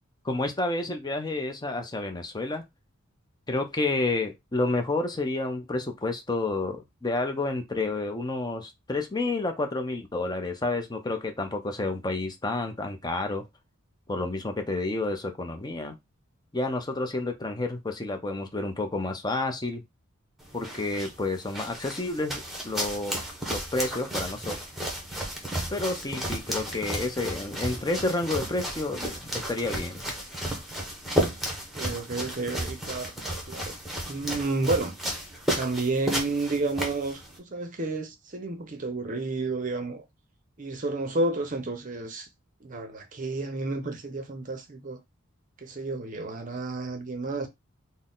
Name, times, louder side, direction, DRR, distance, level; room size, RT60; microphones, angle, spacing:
voice 1, 0.2-2.6 3.5-13.4 14.1-16.0 16.5-19.8 20.5-23.2 23.5-24.6 25.7-30.0, left 2 dB, 20° left, 0.6 m, -30 dB
sound 1, 20.4-37.4, right 1 dB, ahead, 0.9 m, -33 dB
voice 2, 31.7-33.7 34.1-34.9 35.5-40.0 40.6-42.3 42.6-45.0 45.6-47.5, right 2 dB, 40° right, 0.6 m, -31 dB
4.0 x 2.1 x 3.8 m
head